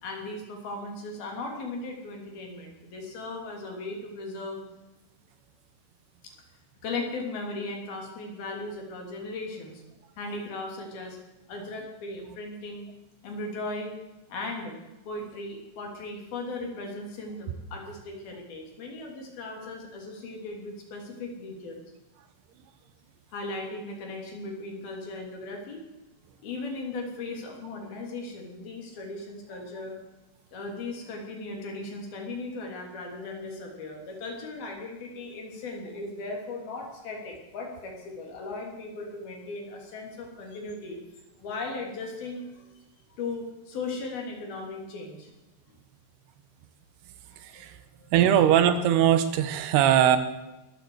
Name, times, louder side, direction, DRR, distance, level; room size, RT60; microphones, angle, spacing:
voice 1, 0.0-4.6 6.8-9.8 10.2-11.2 11.5-12.9 13.2-13.9 14.3-14.7 15.1-21.8 23.3-25.8 26.4-30.0 30.5-42.6 43.2-45.3 47.5-47.6 48.0-48.4, left 2 dB, 65° left, 1 dB, 4.7 m, -37 dB
voice 2, 48.1-50.2, right 10 dB, 80° right, 11 dB, 3.1 m, -20 dB
21.5 x 14.0 x 4.8 m, 1.0 s
omnidirectional pair, 4.8 m